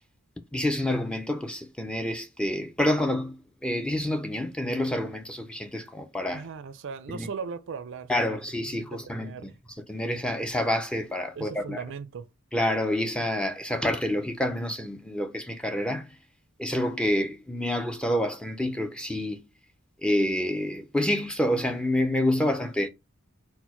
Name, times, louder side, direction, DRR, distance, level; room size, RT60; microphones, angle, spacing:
voice 1, 0.5-6.5 7.1-7.3 8.1-9.5 9.9-11.8 12.5-16.1 16.6-19.4 20.0-22.9, left 1 dB, 5° left, 0.4 m, -28 dB
voice 2, 6.3-8.4 8.6-9.5 11.4-12.3, right 5 dB, 60° right, 0.4 m, -38 dB
4.3 x 2.1 x 4.4 m
head